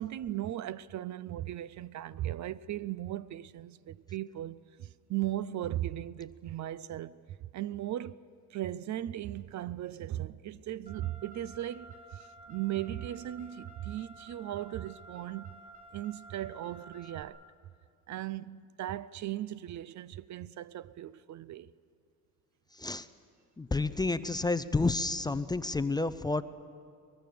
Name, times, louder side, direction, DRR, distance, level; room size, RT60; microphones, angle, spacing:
voice 1, 0.0-7.2 7.5-8.2 8.5-15.6 15.9-17.4 18.1-21.7, right 13 dB, 55° right, 0.5 m, -37 dB
Car, 10.9-17.2, right 2 dB, 25° right, 3.2 m, -52 dB
voice 2, 23.6-26.4, left 3 dB, 10° left, 0.5 m, -30 dB
23.5 x 21.0 x 6.8 m
cardioid pair, 120°, 35 cm